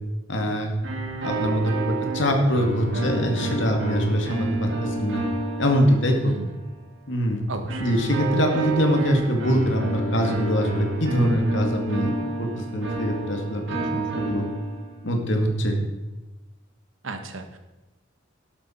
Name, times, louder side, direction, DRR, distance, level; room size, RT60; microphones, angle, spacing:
voice 1, 0.3-0.7 1.2-5.2 5.6-6.3 7.1-7.4 7.8-12.1 12.4-14.5 15.0-15.8, equal, 65° left, 3 dB, 2.2 m, -23 dB
sound 1, 0.8-6.6 7.7-15.1, right 2 dB, 60° right, 2.7 m, -30 dB
voice 2, 6.2-6.6 7.5-8.0 17.0-17.6, right 3 dB, 80° right, 7 dB, 1.4 m, -34 dB
12.0 x 11.5 x 4.5 m, 1.1 s
head